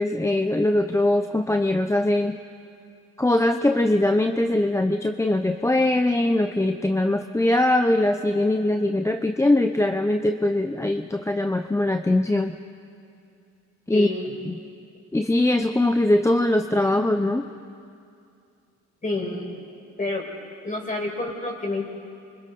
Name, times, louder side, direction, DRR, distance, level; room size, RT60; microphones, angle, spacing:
voice 1, 0.0-2.4 3.2-12.6 13.9-14.1 14.5-14.6 15.1-17.5, left 1 dB, 10° left, 6 dB, 0.7 m, -21 dB
voice 2, 13.9-14.3 19.0-19.5 20.0-20.3 20.6-21.9, left 2 dB, 25° left, 0 dB, 5.5 m, -28 dB
28.5 x 25.0 x 4.2 m, 2.5 s
cardioid pair, 90°, 30 cm